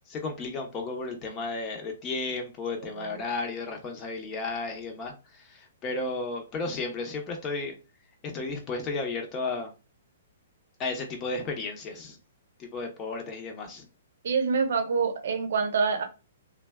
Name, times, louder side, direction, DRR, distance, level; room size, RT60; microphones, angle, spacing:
voice 1, 0.1-7.7 8.2-9.7 10.8-12.2 12.6-13.8, left 3 dB, 25° left, 0.8 m, -33 dB
voice 2, 14.2-16.0, right 5 dB, 65° right, 0.7 m, -26 dB
2.5 x 2.3 x 2.3 m
figure-of-eight pair, 120°, 0 cm